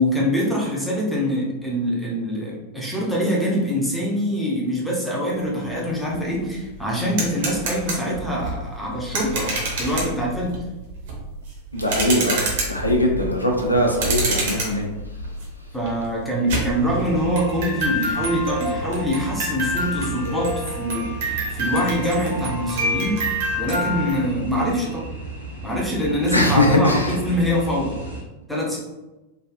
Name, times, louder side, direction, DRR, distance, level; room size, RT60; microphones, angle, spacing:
voice 1, 0.0-10.6 15.7-25.1 25.6-28.0 28.5-28.8, equal, ahead, -5 dB, 0.8 m, -24 dB
sound 1, 5.8-5.9 6.1-24.2, right 1 dB, 55° right, 0.8 m, -28 dB
voice 2, 11.7-12.4 12.7-14.9 26.3-27.4, left 1 dB, 85° left, 1 dB, 0.5 m, -20 dB
sound 2, 16.7-28.2, right 3 dB, 85° right, 0.9 m, -35 dB
3.2 x 2.3 x 2.4 m, 1.1 s
figure-of-eight pair, 90°, 0 cm